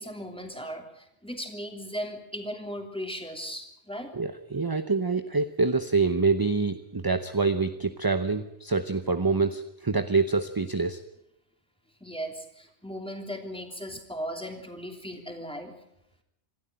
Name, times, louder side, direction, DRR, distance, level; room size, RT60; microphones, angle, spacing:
voice 1, 0.0-4.1 12.0-15.7, equal, 5° left, 3 dB, 3.0 m, -37 dB
voice 2, 4.1-11.0, right 4 dB, 20° right, 10 dB, 0.7 m, -26 dB
26.5 x 12.5 x 9.1 m, 0.83 s
omnidirectional pair, 1.2 m